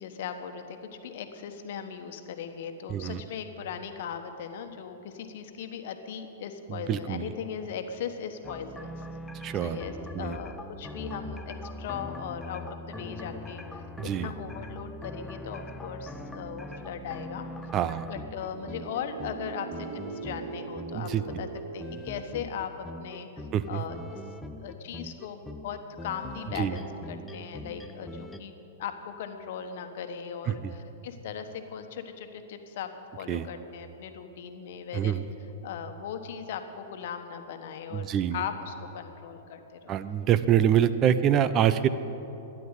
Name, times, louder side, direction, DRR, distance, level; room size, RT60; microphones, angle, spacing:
voice 1, 0.0-8.9 9.5-17.4 18.1-21.5 21.7-24.2 24.6-28.5 28.8-32.9 33.2-35.2 35.6-40.0, left 7 dB, 60° left, 7 dB, 1.2 m, -38 dB
voice 2, 2.9-3.2 6.7-7.3 9.4-9.8 10.1-10.4 14.0-14.3 17.7-18.1 20.9-21.2 23.5-23.8 26.6-26.8 30.5-30.7 33.3-33.5 34.9-35.2 37.9-38.4 39.9-41.9, right 10 dB, 35° right, 13 dB, 0.6 m, -25 dB
sound 1, 8.4-28.4, left 1 dB, 10° left, 0.7 m, -42 dB
sound 2, 18.5-23.6, right 5 dB, 65° right, 1.1 m, -41 dB
13.5 x 10.0 x 8.3 m, 3.0 s
hypercardioid pair, 105°, 0 cm